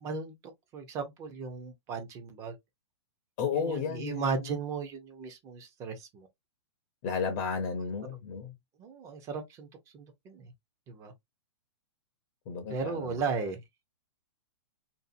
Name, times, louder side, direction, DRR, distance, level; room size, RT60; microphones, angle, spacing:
voice 1, 0.0-0.3 0.7-2.6 3.5-6.3 7.8-7.9 8.8-9.7 9.9-10.5 10.9-11.1 12.7-13.6, right 5 dB, 20° right, 0.5 m, -36 dB
voice 2, 3.4-4.5 7.0-8.5 12.5-13.2, left 6 dB, 35° left, 0.6 m, -33 dB
2.6 x 2.4 x 2.5 m
hypercardioid pair, 150°, 15 cm